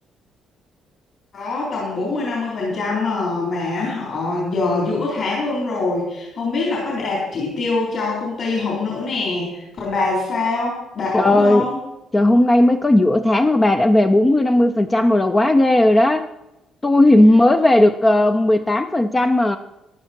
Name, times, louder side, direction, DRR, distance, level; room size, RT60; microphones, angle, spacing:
voice 1, 1.3-11.8, left 3 dB, 45° left, -5 dB, 3.7 m, -24 dB
voice 2, 11.1-11.7 12.1-16.3 16.8-19.6, left 1 dB, 15° left, 9 dB, 0.4 m, -15 dB
14.0 x 10.5 x 4.4 m, 0.91 s
cardioid pair, 175°, 0 cm